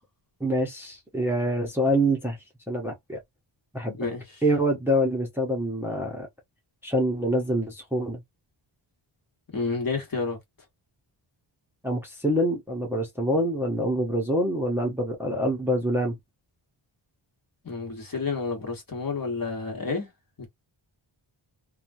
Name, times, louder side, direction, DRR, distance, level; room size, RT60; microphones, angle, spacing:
voice 1, 0.4-2.4 2.7-3.2 3.7-4.1 4.4-6.3 6.8-8.2 11.8-16.2, equal, 5° right, 0.7 m, -26 dB
voice 2, 9.5-10.4 17.6-20.1 20.4-20.5, left 4 dB, 45° left, 1.3 m, -30 dB
3.0 x 2.3 x 2.6 m
wide cardioid pair, 150°, 48 cm